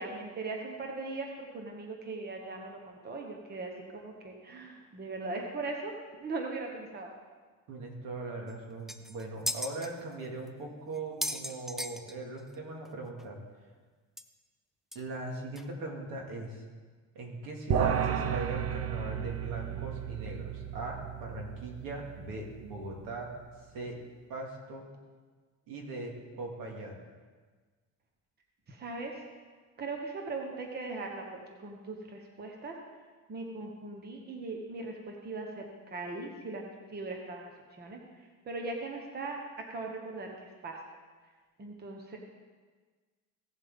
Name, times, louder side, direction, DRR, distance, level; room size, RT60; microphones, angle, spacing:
voice 1, 0.0-5.9 6.2-7.1 28.7-29.1 29.8-32.8 33.3-37.5 37.8-38.0 38.4-39.4 39.7-40.8 41.6-42.2, right 3 dB, 30° right, 1 dB, 1.2 m, -39 dB
voice 2, 7.7-13.4 14.9-16.6 17.1-23.3 23.7-24.0 24.3-24.9 25.7-27.0, right 2 dB, 70° right, 0 dB, 2.3 m, -40 dB
sound 1, 8.5-8.6 8.9-9.9 10.5-10.6 10.9-12.5 12.8-12.9 13.2-13.3 14.2-14.3 14.9-15.0 15.6-15.7, equal, ahead, 0.4 m, -36 dB
sound 2, 17.7-23.2, right 8 dB, 45° right, 0.7 m, -34 dB
16.5 x 7.4 x 3.8 m, 1.4 s
cardioid pair, 135°, 35 cm